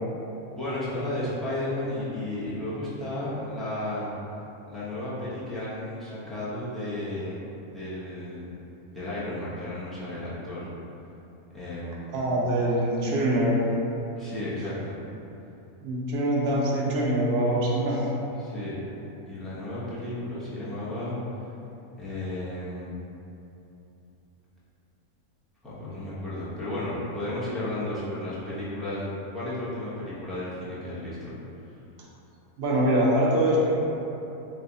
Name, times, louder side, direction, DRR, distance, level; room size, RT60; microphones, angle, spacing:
voice 1, 0.5-4.1 4.7-7.4 7.7-8.5 8.9-10.7 11.5-12.1 14.2-15.0 18.4-18.8 19.3-21.2 22.0-22.9 25.6-31.3, left 1 dB, ahead, -13 dB, 0.4 m, -33 dB
voice 2, 12.1-13.6 15.8-18.1 32.6-33.7, right 1 dB, 70° right, -4 dB, 0.6 m, -24 dB
3.3 x 2.3 x 3.8 m, 3.0 s
omnidirectional pair, 1.6 m